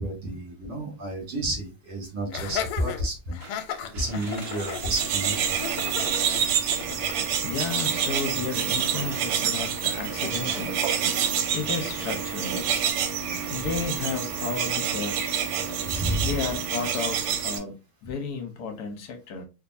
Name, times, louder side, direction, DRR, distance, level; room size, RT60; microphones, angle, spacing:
voice 1, 0.0-3.4 3.9-5.4 15.9-16.4, right 1 dB, 70° right, 2.7 m, -30 dB
Laughter, 2.3-7.3, left 9 dB, 90° left, 1.5 m, -35 dB
sound 1, 3.4-7.1 7.9-12.3 12.7-12.8, right 3 dB, 45° right, 0.8 m, -46 dB
sound 2, 4.3-17.6, right 8 dB, 85° right, 1.6 m, -27 dB
voice 2, 7.4-10.8 11.5-12.7 13.5-15.4 16.2-19.4, left 5 dB, 65° left, 1.0 m, -33 dB
5.0 x 2.4 x 2.5 m
omnidirectional pair, 2.4 m